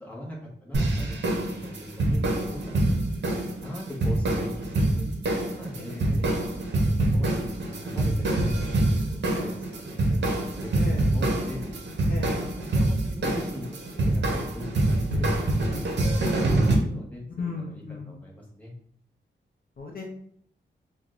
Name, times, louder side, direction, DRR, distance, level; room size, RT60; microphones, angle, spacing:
voice 1, 0.0-2.9 3.3-5.1 5.5-8.8 9.1-9.6 10.1-11.6 12.2-13.6 13.9-18.7, left 1 dB, 10° left, -4 dB, 0.9 m, -40 dB
sound 1, 0.7-16.8, right 1 dB, 65° right, 0.7 m, -25 dB
voice 2, 12.1-12.4 17.4-18.1 19.8-20.0, left 4 dB, 50° left, 0 dB, 0.6 m, -35 dB
5.6 x 2.2 x 2.4 m, 0.62 s
wide cardioid pair, 160°, 19 cm